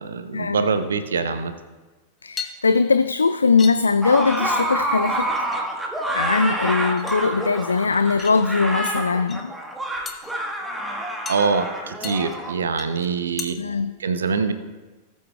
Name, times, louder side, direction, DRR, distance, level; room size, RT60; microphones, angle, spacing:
voice 1, 0.0-1.5 11.3-13.6 14.0-14.5, right 5 dB, 70° right, 10 dB, 0.7 m, -24 dB
voice 2, 2.2-5.3 6.1-9.5 13.6-13.9, left 4 dB, 75° left, 11 dB, 0.3 m, -20 dB
sound 1, 2.3-3.1 3.6-3.8 4.1-4.8 5.1-5.6 5.8-6.5 7.0-7.7 8.2-8.9 9.2-9.4 10.1-10.4 11.3-11.5 12.0-12.4 12.8-13.1 13.4-13.5, left 6 dB, 20° left, 1.1 m, -36 dB
sound 2, 4.0-12.5, right 1 dB, 5° right, 1.5 m, -27 dB
19.0 x 8.3 x 2.4 m, 1.2 s
figure-of-eight pair, 90°, 0 cm